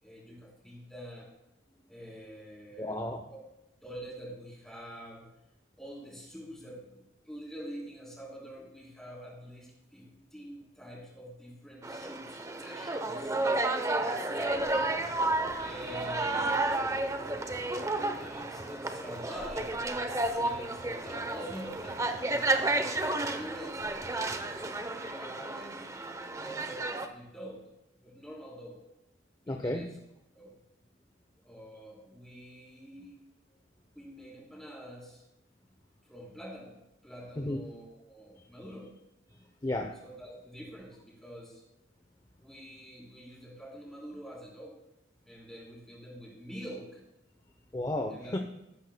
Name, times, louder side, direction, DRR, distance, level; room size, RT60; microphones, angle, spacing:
voice 1, 0.0-1.3 1.9-3.0 3.8-5.3 5.8-14.7 15.6-17.1 17.9-22.9 23.3-24.3 24.9-25.9 26.4-27.6 28.0-28.8 29.5-29.9 30.3-30.5 31.4-33.2 33.9-35.2 36.1-38.9 40.0-41.6 42.4-44.8 45.3-47.0 48.1-48.3, equal, 5° left, -4 dB, 3.8 m, -46 dB
voice 2, 2.8-3.2 29.5-29.9 37.4-37.6 38.4-38.5 39.3-40.0 47.7-48.4, left 1 dB, 20° left, 4 dB, 0.7 m, -34 dB
sound 1, 11.8-27.1, right 2 dB, 15° right, 0.7 m, -32 dB
sound 2, 14.5-24.8, right 1 dB, 40° right, 1.3 m, -51 dB
13.5 x 12.5 x 2.2 m, 0.91 s
head